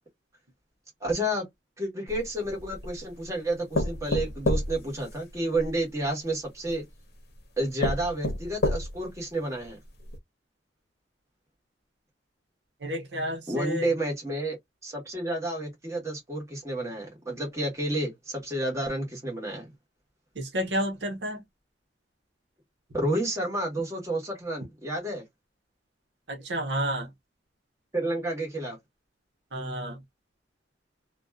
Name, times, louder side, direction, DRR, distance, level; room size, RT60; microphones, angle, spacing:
voice 1, 1.0-1.5 1.8-6.8 7.6-9.8 13.5-14.6 14.8-19.7 22.9-25.2 27.9-28.8, right 1 dB, 15° right, 1.1 m, -30 dB
sound 1, 2.1-3.0 3.7-5.7 6.7-6.8 7.4-7.5 7.8-9.2 9.6-9.7 10.1-10.2, left 1 dB, 60° left, 0.8 m, -29 dB
voice 2, 12.8-13.9 20.4-21.4 26.3-27.1 29.5-30.0, right 1 dB, 75° right, 0.9 m, -30 dB
2.5 x 2.2 x 2.2 m
head